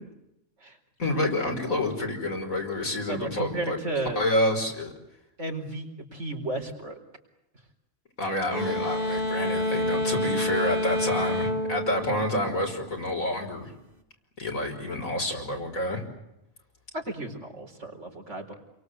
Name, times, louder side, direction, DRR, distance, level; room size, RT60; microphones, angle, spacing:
voice 1, 1.0-3.8 4.2-4.9 8.2-13.7 14.4-16.0, left 1 dB, 75° left, 2 dB, 6.1 m, -28 dB
voice 2, 3.1-4.2 5.4-7.0 16.9-18.5, right 2 dB, 55° right, 3 dB, 4.9 m, -33 dB
sound 1, 8.5-13.0, equal, 40° right, 2.9 m, -28 dB
29.0 x 23.5 x 8.1 m, 0.87 s
omnidirectional pair, 1.4 m